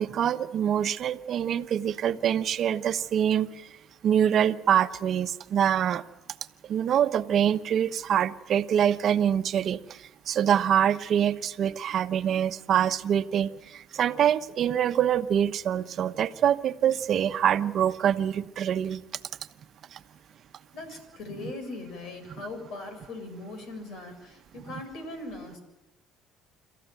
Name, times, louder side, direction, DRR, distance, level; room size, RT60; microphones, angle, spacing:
voice 1, 0.0-3.6 4.0-6.0 6.7-19.0 19.9-20.0, right 9 dB, 55° right, 10 dB, 1.1 m, -25 dB
voice 2, 20.7-25.6, left 2 dB, 65° left, 7 dB, 7.1 m, -40 dB
27.0 x 14.0 x 9.2 m, 1.1 s
supercardioid pair, 90°, 0 cm